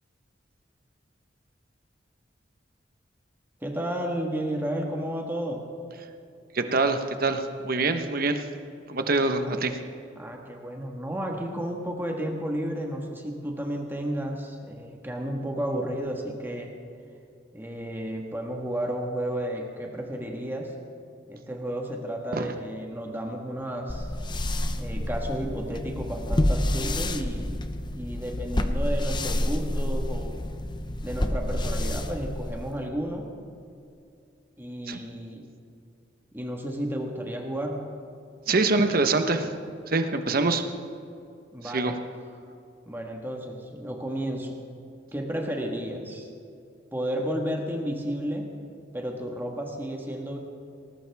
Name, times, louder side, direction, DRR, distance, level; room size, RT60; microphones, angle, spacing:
voice 1, 3.6-5.6 9.4-9.6 10.2-16.7 17.5-20.7 21.3-24.1 24.8-27.6 27.9-30.4 31.0-33.3 34.6-35.5 36.3-37.9 41.5-42.0 42.9-44.6 45.1-46.3 46.9-48.5 48.9-50.4, equal, 10° right, 1 dB, 1.5 m, -32 dB
voice 2, 6.5-8.4 8.9-9.7 22.3-22.5 34.9-35.0 38.5-39.5 39.9-40.7 41.7-41.9, right 3 dB, 55° right, 7 dB, 1.1 m, -24 dB
sound 1, 23.9-32.8, left 1 dB, 25° left, 0.8 m, -28 dB
19.0 x 19.0 x 3.5 m, 2.5 s
head